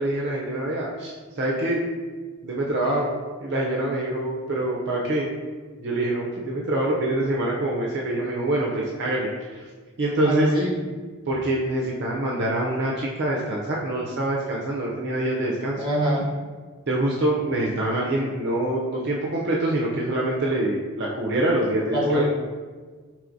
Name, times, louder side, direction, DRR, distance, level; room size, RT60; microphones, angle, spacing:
voice 1, 0.0-1.8 2.4-3.1 3.4-5.3 5.8-9.6 10.0-10.5 11.3-15.8 16.9-22.2, right 1 dB, 55° right, -3 dB, 0.5 m, -25 dB
voice 2, 10.2-10.8 15.7-16.3 21.9-22.2, right 1 dB, 20° right, -5 dB, 1.1 m, -23 dB
4.8 x 3.0 x 2.6 m, 1.5 s
head